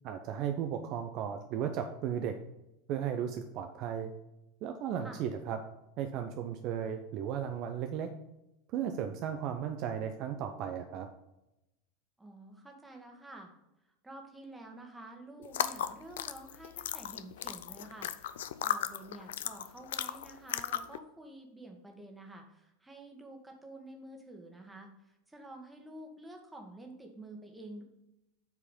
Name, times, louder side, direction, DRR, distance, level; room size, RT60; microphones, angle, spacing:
voice 1, 0.0-2.4 2.9-4.1 4.6-5.6 6.0-8.1 8.7-11.1, right 8 dB, 45° right, 6 dB, 0.6 m, -35 dB
voice 2, 12.2-13.5 14.0-18.4 18.6-27.8, right 1 dB, 10° right, 2 dB, 1.6 m, -49 dB
sound 1, 15.4-21.0, left 10 dB, 60° left, 0.4 m, -36 dB
8.1 x 4.7 x 5.2 m, 0.90 s
figure-of-eight pair, 85°, 0 cm